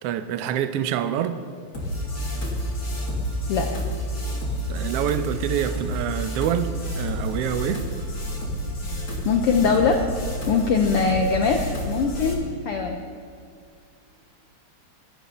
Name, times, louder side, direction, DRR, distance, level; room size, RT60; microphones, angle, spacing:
voice 1, 0.0-1.4 4.7-7.8, right 9 dB, 90° right, 10 dB, 1.3 m, -26 dB
sound 1, 1.7-12.3, equal, 30° left, 3.1 m, -29 dB
voice 2, 9.2-10.0 10.5-13.0, left 5 dB, 80° left, 3 dB, 1.2 m, -22 dB
22.0 x 13.0 x 4.2 m, 2.3 s
omnidirectional pair, 3.7 m